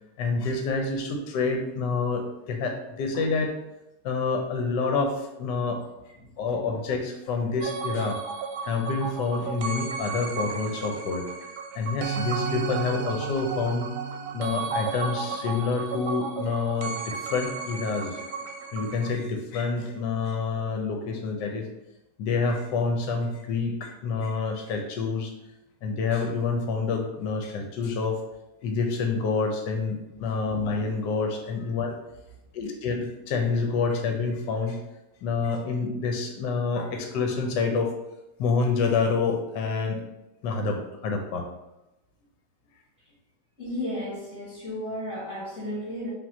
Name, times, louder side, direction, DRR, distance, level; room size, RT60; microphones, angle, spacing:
voice 1, 0.2-3.5 4.0-5.8 6.4-8.2 8.6-11.3 11.7-13.9 14.3-18.4 18.7-21.7 22.2-25.3 25.8-28.2 28.6-32.0 32.5-34.8 35.2-37.9 38.4-40.0 40.4-41.4, left 4 dB, 80° left, 3 dB, 1.3 m, -27 dB
sound 1, 7.6-19.1, right 5 dB, 75° right, 1.1 m, -33 dB
voice 2, 43.6-46.1, left 1 dB, 45° left, -12 dB, 1.9 m, -34 dB
5.4 x 2.7 x 2.7 m, 0.91 s
omnidirectional pair, 1.9 m